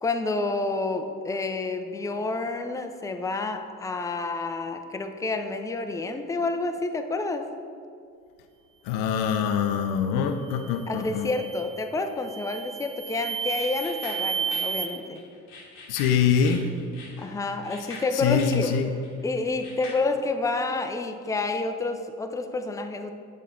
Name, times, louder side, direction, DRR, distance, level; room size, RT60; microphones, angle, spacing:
voice 1, 0.0-7.5 10.9-15.2 17.2-18.7 19.2-23.1, left 3 dB, 10° left, 6 dB, 0.4 m, -29 dB
voice 2, 8.9-11.3 15.9-16.7 18.1-18.9, left 7 dB, 60° left, 7 dB, 0.5 m, -24 dB
sound 1, 10.4-10.7 11.2-11.7 12.2-14.9, right 7 dB, 75° right, 0.7 m, -32 dB
sound 2, 13.6-19.9, left 3 dB, 85° left, 1.1 m, -44 dB
7.5 x 4.1 x 3.7 m, 2.3 s
hypercardioid pair, 50°, 44 cm